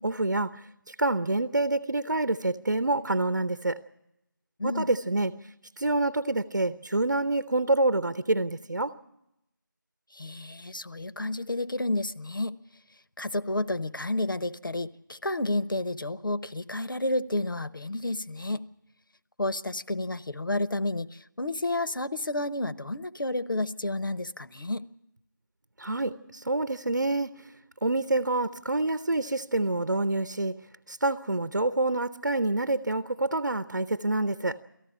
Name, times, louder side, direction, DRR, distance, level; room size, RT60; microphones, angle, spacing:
voice 1, 0.0-3.8 4.6-5.3 5.8-8.9 25.8-27.3 27.8-30.5 30.9-34.6, right 2 dB, 60° right, 13 dB, 0.9 m, -27 dB
voice 2, 10.1-12.6 13.2-18.6 19.4-24.8, left 2 dB, 75° left, 13 dB, 1.0 m, -31 dB
18.0 x 14.5 x 9.9 m, 0.84 s
figure-of-eight pair, 180°, 11 cm